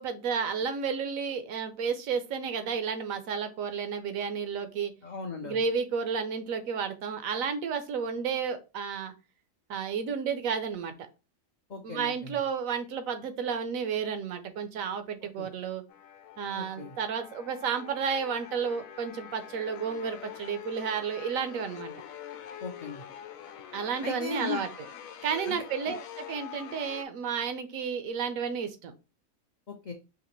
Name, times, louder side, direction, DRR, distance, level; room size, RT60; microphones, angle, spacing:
voice 1, 0.0-4.9 5.4-9.1 9.7-10.9 11.8-15.8 16.4-21.9 23.7-24.7 25.2-28.9, right 6 dB, 75° right, 9 dB, 1.1 m, -32 dB
voice 2, 5.0-5.6 11.7-12.4 15.4-15.5 16.5-17.0 22.6-23.0 24.0-24.6 25.5-25.6 25.9-26.0 29.7-29.9, left 5 dB, 55° left, 3 dB, 0.4 m, -37 dB
sound 1, 15.9-27.1, left 9 dB, 80° left, 1.0 m, -45 dB
4.9 x 2.9 x 3.0 m, 0.29 s
omnidirectional pair, 1.4 m